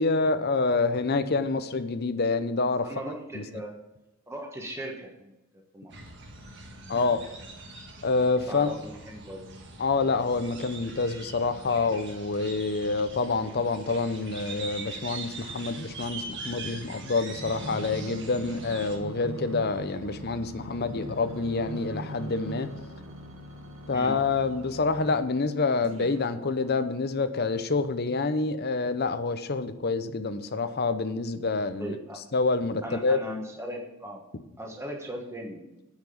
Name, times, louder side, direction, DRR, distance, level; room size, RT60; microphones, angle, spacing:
voice 1, 0.0-2.9 3.3-3.4 6.9-7.2 8.0-8.7 9.8-22.7 23.9-32.0 32.3-33.2, left 3 dB, 45° left, 10 dB, 0.7 m, -27 dB
voice 2, 2.8-3.7 4.3-5.3 5.7-6.0 8.5-9.4 23.9-24.2 31.8-32.2 32.8-34.2 34.6-35.6, equal, 10° right, 1 dB, 1.3 m, -38 dB
sound 1, 5.9-19.0, right 3 dB, 55° right, 1.5 m, -42 dB
sound 2, 17.3-25.2 25.8-27.1 27.7-27.8, right 1 dB, 70° right, 1.5 m, -41 dB
9.0 x 5.9 x 7.1 m, 0.96 s
head